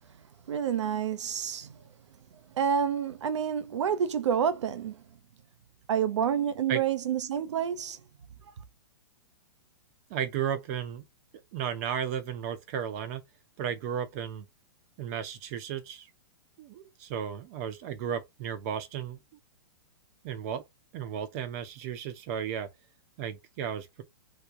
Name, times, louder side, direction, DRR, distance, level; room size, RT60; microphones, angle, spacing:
voice 1, 0.5-1.8 2.5-5.0 5.9-8.0, right 8 dB, 85° right, 0.7 m, -28 dB
voice 2, 10.1-11.1 11.5-13.2 13.6-14.5 15.0-16.1 16.6-19.2 20.2-20.7 20.9-22.7 23.2-24.0, right 8 dB, 35° right, 0.7 m, -34 dB
3.0 x 2.1 x 3.5 m
hypercardioid pair, 160°, 15 cm